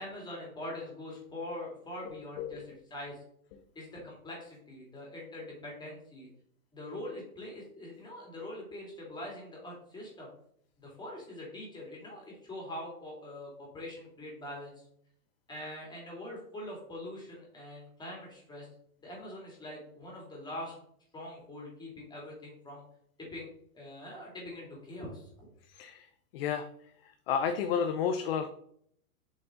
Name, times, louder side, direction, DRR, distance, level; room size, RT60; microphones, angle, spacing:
voice 1, 0.0-2.6 2.9-3.2 3.7-6.3 6.7-10.3 10.8-14.8 15.5-18.7 19.0-20.7 21.1-22.8 23.2-23.5 23.7-25.5, left 1 dB, 10° left, -3 dB, 2.9 m, -43 dB
voice 2, 2.0-2.7 3.5-3.6 25.6-26.1 26.3-26.7 27.0-28.5, left 7 dB, 40° left, 7 dB, 0.7 m, -32 dB
7.3 x 5.4 x 3.9 m, 0.67 s
hypercardioid pair, 145°, 44 cm